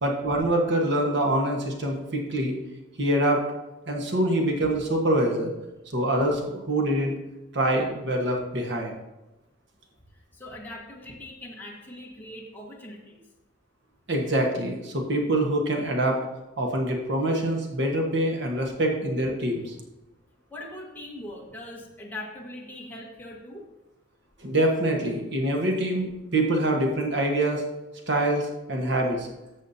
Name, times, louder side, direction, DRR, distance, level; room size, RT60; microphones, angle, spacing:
voice 1, 0.0-2.5 3.0-3.4 3.9-5.5 5.9-7.2 7.5-8.9 14.1-16.2 16.6-19.7 24.4-27.6 28.1-29.3, right 1 dB, 65° right, 1 dB, 1.4 m, -25 dB
voice 2, 10.1-13.2 20.5-23.7, left 1 dB, 10° left, -3 dB, 1.5 m, -41 dB
13.5 x 7.3 x 2.8 m, 1.0 s
head